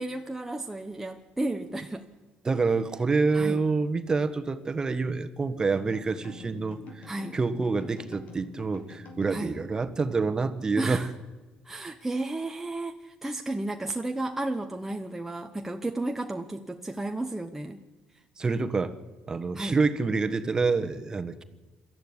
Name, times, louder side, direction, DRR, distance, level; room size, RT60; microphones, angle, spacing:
voice 1, 0.0-2.1 3.3-3.6 7.1-7.4 9.3-9.6 10.8-11.1 11.6-17.8 19.5-19.8, right 2 dB, 10° right, 4 dB, 1.0 m, -33 dB
voice 2, 2.4-11.1 18.4-19.0 19.3-21.4, right 4 dB, 25° right, 9 dB, 1.4 m, -27 dB
sound 1, 5.6-10.4, left 2 dB, 65° left, 5.5 m, -47 dB
22.0 x 14.0 x 9.8 m, 1.2 s
cardioid pair, 105°, 3 cm